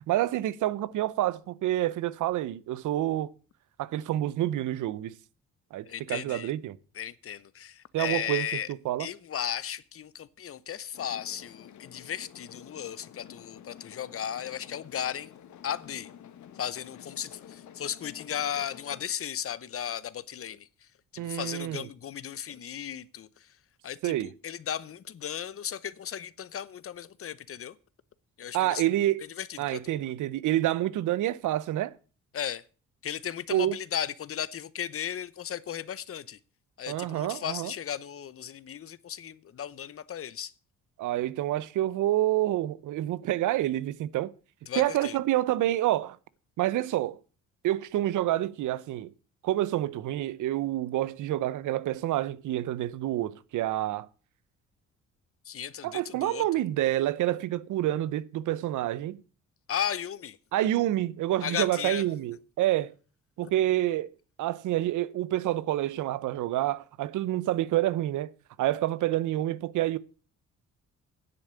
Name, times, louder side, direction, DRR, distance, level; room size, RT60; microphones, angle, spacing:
voice 1, 0.1-3.3 3.8-5.1 5.7-6.8 7.9-8.5 8.8-9.1 21.2-21.9 24.0-24.3 28.5-29.2 29.6-31.9 33.5-33.8 36.9-37.7 41.0-44.3 44.7-46.2 46.6-47.2 47.6-49.1 49.4-54.1 55.8-59.2 60.5-62.9 63.4-64.1 64.4-68.3 68.6-70.0, right 14 dB, 80° right, 0.8 m, -28 dB
voice 2, 5.9-6.5 6.9-8.7 9.0-15.3 15.6-16.1 16.5-20.9 21.1-23.6 23.8-27.8 28.4-28.9 29.2-30.0 32.3-32.6 33.0-36.4 36.8-40.5 44.7-45.2 55.4-56.5 59.7-60.4 61.4-62.0 63.4-63.5, left 9 dB, 50° left, 0.8 m, -35 dB
sound 1, 10.9-19.1, left 9 dB, 70° left, 1.4 m, -50 dB
10.0 x 8.2 x 6.8 m
cardioid pair, 90°, 30 cm